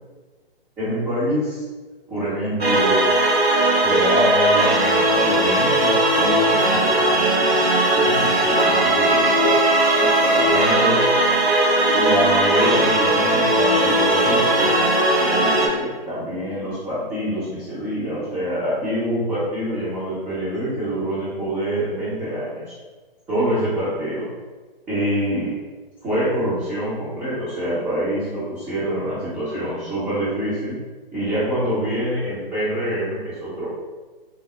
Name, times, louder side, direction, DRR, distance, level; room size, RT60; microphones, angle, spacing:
voice 1, 0.8-1.6 2.1-3.0 3.8-11.0 11.9-14.8 15.2-22.7 23.3-24.3 24.9-25.5 26.0-30.8 31.1-33.6, equal, 5° right, -14 dB, 0.6 m, -26 dB
sound 1, 2.6-15.7, right 1 dB, 85° right, 0.9 m, -18 dB
3.7 x 2.0 x 3.2 m, 1.3 s
figure-of-eight pair, 135°, 30 cm